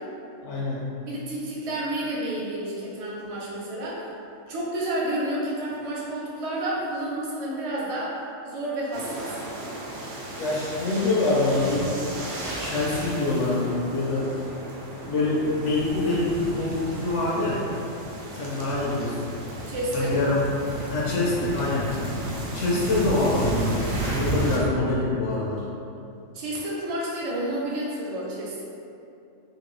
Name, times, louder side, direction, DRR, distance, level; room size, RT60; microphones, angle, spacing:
voice 1, 0.4-0.8 10.4-11.9 12.6-14.3 15.0-17.6 18.3-19.3 19.9-20.5 20.9-21.9 22.4-25.6, left 2 dB, 70° left, -6 dB, 0.9 m, -25 dB
voice 2, 1.0-4.1 4.5-9.3 19.7-20.3 26.3-28.6, right 1 dB, 50° right, -6 dB, 0.4 m, -30 dB
sound 1, 8.9-24.6, right 1 dB, 75° right, 0.9 m, -33 dB
2.9 x 2.6 x 3.0 m, 2.7 s
omnidirectional pair, 1.3 m